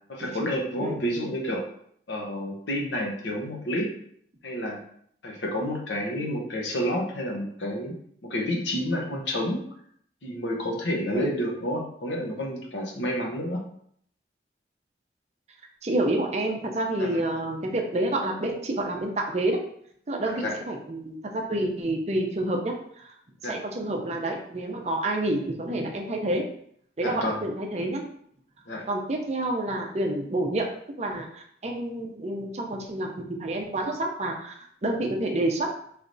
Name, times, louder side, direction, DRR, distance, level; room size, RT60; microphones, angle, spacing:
voice 1, 0.1-1.6 2.1-3.9 4.4-4.8 5.2-9.6 10.2-13.6 17.0-17.2 20.3-20.6 23.4-23.6 27.0-27.4 28.7-28.9, equal, 80° left, 1 dB, 0.9 m, -30 dB
voice 2, 15.8-19.6 20.1-23.1 23.5-26.5 27.0-28.0 28.9-30.7 31.0-33.1 33.4-35.7, right 1 dB, 35° right, 2 dB, 0.6 m, -28 dB
4.7 x 3.2 x 2.6 m, 0.66 s
head